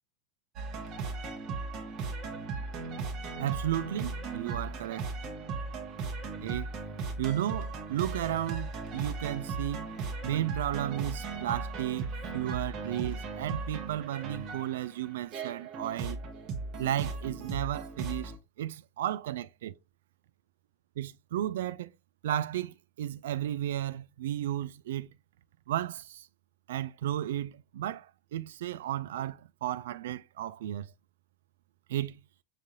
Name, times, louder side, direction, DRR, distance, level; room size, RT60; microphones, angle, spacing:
sound 1, 0.6-18.4, right 4 dB, 35° right, 1.0 m, -37 dB
voice 1, 3.4-5.1 6.4-6.7 7.2-9.9 10.2-16.2 16.8-18.3 18.6-19.8 21.0-21.9 22.2-25.2 25.7-26.3 26.7-30.9 31.9-32.2, right 12 dB, 55° right, 0.3 m, -34 dB
5.8 x 2.4 x 2.7 m
figure-of-eight pair, 90°, 0 cm